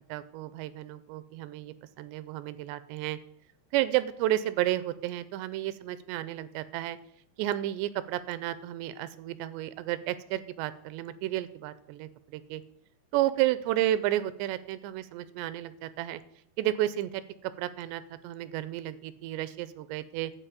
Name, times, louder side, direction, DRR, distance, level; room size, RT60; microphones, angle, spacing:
voice 1, 0.1-3.2 3.7-7.0 7.4-12.6 13.1-16.2 16.6-20.3, right 14 dB, 90° right, 15 dB, 2.8 m, -32 dB
11.5 x 4.8 x 8.3 m, 0.77 s
omnidirectional pair, 4.9 m